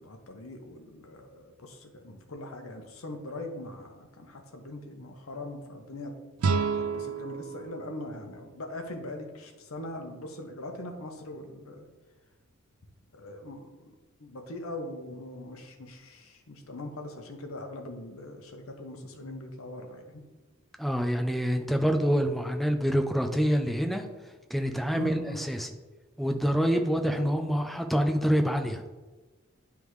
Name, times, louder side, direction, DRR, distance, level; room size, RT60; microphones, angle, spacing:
voice 1, 0.0-6.2 6.7-11.9 13.1-13.9 14.2-20.2 24.9-25.5 27.2-27.3, left 1 dB, 70° left, 4 dB, 0.9 m, -41 dB
sound 1, 6.4-9.4, right 5 dB, 75° right, 0.4 m, -32 dB
voice 2, 20.8-24.1 24.5-25.7 26.2-28.8, equal, ahead, 4 dB, 0.5 m, -26 dB
9.7 x 3.5 x 3.1 m, 1.2 s
head